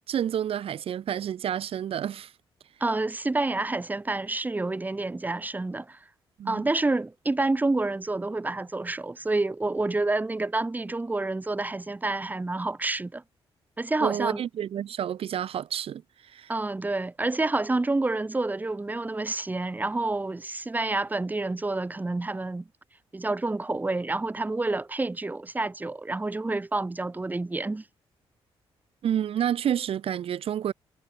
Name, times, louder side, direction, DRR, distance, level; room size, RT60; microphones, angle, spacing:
voice 1, 0.1-2.3 6.4-6.7 14.0-16.0 16.3-16.5 29.0-30.7, right 10 dB, 65° right, 3.6 m, -29 dB
voice 2, 2.8-6.0 6.5-13.2 13.8-14.4 16.5-22.7 23.1-27.8, right 2 dB, 15° right, 2.8 m, -28 dB
cardioid pair, 115°, 10 cm